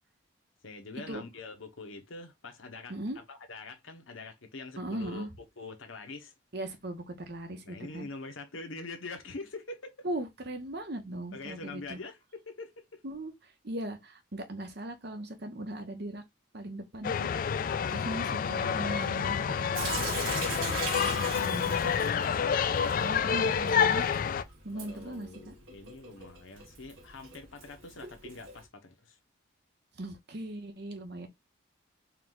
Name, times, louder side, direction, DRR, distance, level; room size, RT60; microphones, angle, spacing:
voice 1, 0.6-2.9 3.3-5.3 5.6-6.3 7.6-10.1 11.3-13.0 24.7-29.2, left 3 dB, 85° left, 1.0 m, -44 dB
voice 2, 4.8-5.3 6.5-8.1 10.0-12.0 13.0-13.3 13.6-16.2 16.5-17.3 17.9-19.9 20.8-21.9 23.0-24.1 24.6-25.5 30.0-31.3, right 1 dB, 55° right, 1.0 m, -39 dB
sound 1, 17.0-24.4, left 7 dB, 45° left, 0.3 m, -28 dB
Sink (filling or washing) / Drip, 19.7-28.6, right 4 dB, 85° right, 1.4 m, -41 dB
4.6 x 2.4 x 3.8 m
head